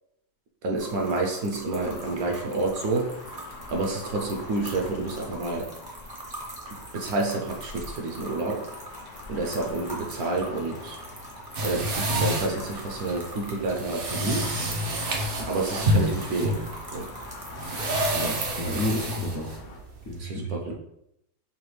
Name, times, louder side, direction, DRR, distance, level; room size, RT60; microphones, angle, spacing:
voice 1, 0.6-3.1 3.7-5.7 6.7-8.6 9.3-11.0 11.6-14.5 15.5-17.1 18.2-18.4 20.2-20.7, right 2 dB, 70° right, 1 dB, 1.0 m, -29 dB
sound 1, 0.7-19.0, right 1 dB, 25° right, 0.5 m, -43 dB
sound 2, 1.7-19.8, left 3 dB, 80° left, 1.4 m, -44 dB
sound 3, 11.5-20.2, right 1 dB, 85° right, 0.4 m, -28 dB
voice 2, 18.1-19.5 20.0-20.7, left 1 dB, 60° left, -3 dB, 0.8 m, -31 dB
5.9 x 2.3 x 3.2 m, 0.80 s
omnidirectional pair, 1.9 m